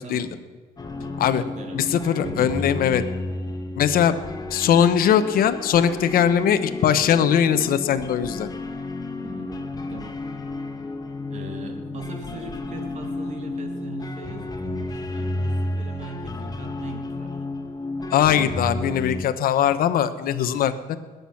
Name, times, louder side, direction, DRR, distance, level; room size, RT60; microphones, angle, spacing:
sound 1, 0.8-19.2, left 2 dB, 20° left, 1.4 m, -32 dB
voice 1, 1.0-1.9 2.2-2.8 9.2-10.1 11.3-17.4, right 3 dB, 45° right, 4 dB, 2.7 m, -39 dB
voice 2, 1.7-3.0 3.8-4.2 4.5-8.5 18.1-21.0, left 9 dB, 60° left, 9 dB, 1.0 m, -20 dB
20.5 x 8.2 x 5.9 m, 1.4 s
cardioid pair, 110°, 17 cm